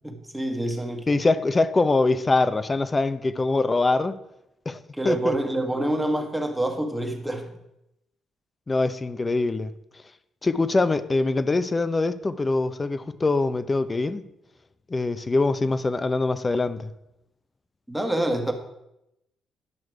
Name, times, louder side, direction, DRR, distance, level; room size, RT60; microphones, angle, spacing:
voice 1, 0.0-1.1 5.0-7.5 17.9-18.5, right 1 dB, 5° right, 1.3 m, -27 dB
voice 2, 1.1-4.2 4.7-5.4 8.7-9.7 10.4-14.2 14.9-16.9, left 3 dB, 25° left, 0.6 m, -23 dB
11.0 x 6.2 x 4.8 m
cardioid pair, 90°, 0 cm